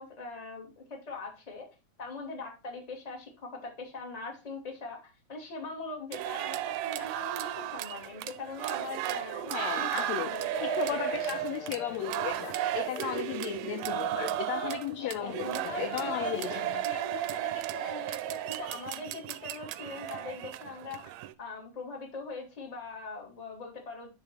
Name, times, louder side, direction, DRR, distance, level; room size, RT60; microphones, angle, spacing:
voice 1, 0.0-1.7 2.0-11.0 13.1-13.2 14.6-14.7 15.0-21.1 21.4-24.1, left 3 dB, 15° left, 1.4 m, -41 dB
sound 1, 6.1-21.3, right 14 dB, 80° right, 1.7 m, -35 dB
voice 2, 9.5-10.3 10.6-15.5 15.8-16.7, left 11 dB, 80° left, 1.6 m, -35 dB
Digital error in music transmission, 10.5-16.6, left 2 dB, 50° left, 2.1 m, -44 dB
9.6 x 3.8 x 4.3 m
omnidirectional pair, 3.4 m